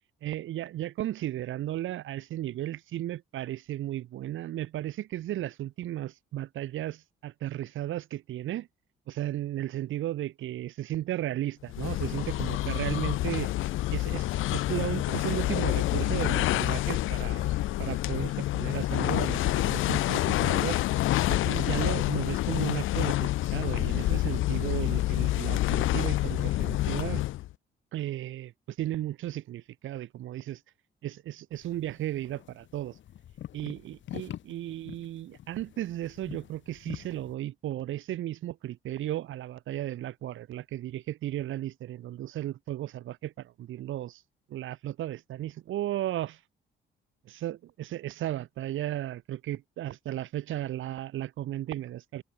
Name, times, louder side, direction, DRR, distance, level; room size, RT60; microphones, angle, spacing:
voice 1, 0.2-8.7 9.1-13.5 13.9-20.8 21.3-27.2 27.9-30.6 31.0-33.0 33.5-44.2 44.5-46.4 47.3-52.2, right 13 dB, 80° right, 3.5 m, -35 dB
sound 1, 11.7-27.5, left 16 dB, 90° left, 1.6 m, -28 dB
sound 2, 31.5-37.3, left 11 dB, 70° left, 2.4 m, -45 dB
cardioid pair, 90°, 20 cm